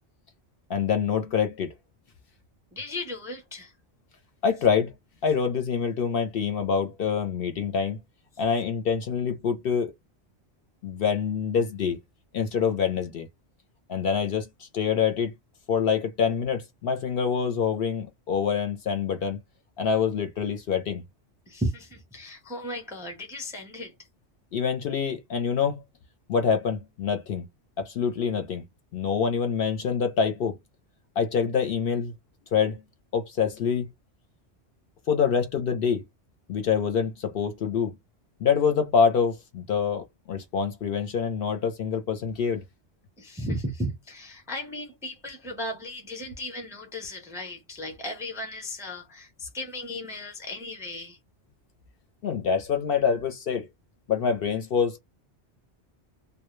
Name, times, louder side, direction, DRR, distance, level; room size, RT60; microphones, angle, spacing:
voice 1, 0.7-1.7 4.4-4.9 5.2-8.0 8.4-9.9 10.8-12.0 12.3-13.3 13.9-15.3 15.7-19.4 19.8-21.0 24.5-25.8 26.3-27.5 27.8-28.6 28.9-30.6 31.2-32.1 32.5-32.8 33.1-33.9 35.1-36.0 36.5-38.0 38.4-42.6 52.2-53.7 54.1-55.0, left 6 dB, 65° left, 0.7 m, -26 dB
voice 2, 2.7-3.7 21.5-23.9 43.2-51.2, left 1 dB, 5° right, 0.5 m, -35 dB
2.1 x 2.0 x 3.0 m
omnidirectional pair, 1.2 m